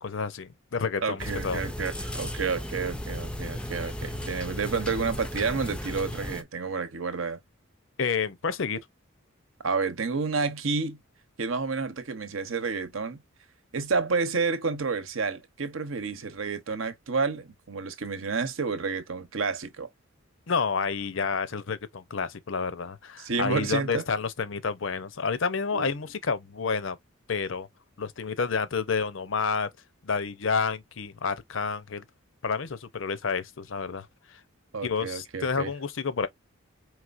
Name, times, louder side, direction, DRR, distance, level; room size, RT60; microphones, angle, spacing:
voice 1, 0.0-1.6 8.0-8.8 20.5-27.0 27.3-27.7 28.0-29.7 30.0-32.0 32.4-34.4 34.8-36.3, left 5 dB, 65° left, 0.6 m, -29 dB
voice 2, 1.0-7.4 9.6-11.0 11.4-13.2 13.7-19.9 23.2-24.0 25.7-25.9 34.7-35.7, right 4 dB, 70° right, 0.9 m, -30 dB
sound 1, 1.2-6.4, left 1 dB, 5° left, 0.4 m, -35 dB
4.8 x 3.3 x 2.5 m
head